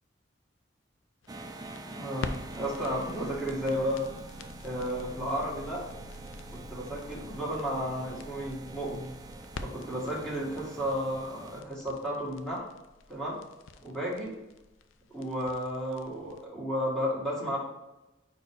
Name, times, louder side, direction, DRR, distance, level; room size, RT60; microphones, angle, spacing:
sound 1, 1.2-16.4, left 3 dB, 80° left, 0.5 m, -46 dB
sound 2, 1.3-11.6, right 2 dB, 20° right, 0.4 m, -45 dB
voice 1, 1.9-4.0 4.6-5.8 6.5-9.1 9.6-12.7 13.1-13.4 13.8-14.3 15.1-17.6, equal, 5° left, -5 dB, 1.7 m, -33 dB
4.7 x 4.6 x 4.6 m, 0.99 s
head